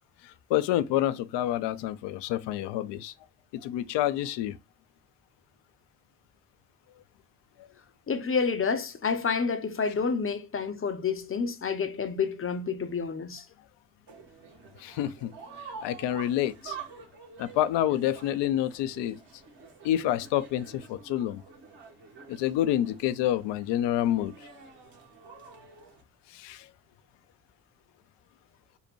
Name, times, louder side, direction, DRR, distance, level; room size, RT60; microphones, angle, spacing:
voice 1, 0.2-3.1 3.5-4.6 7.6-7.7 14.8-15.3 15.8-16.8 17.4-19.2 19.8-21.4 22.3-24.3 26.3-26.6, left 12 dB, 65° left, 0.6 m, -28 dB
voice 2, 8.1-13.4, left 5 dB, 30° left, 0.8 m, -29 dB
sound 1, 14.1-26.0, right 5 dB, 60° right, 1.7 m, -48 dB
5.4 x 2.2 x 4.5 m
hypercardioid pair, 50°, 46 cm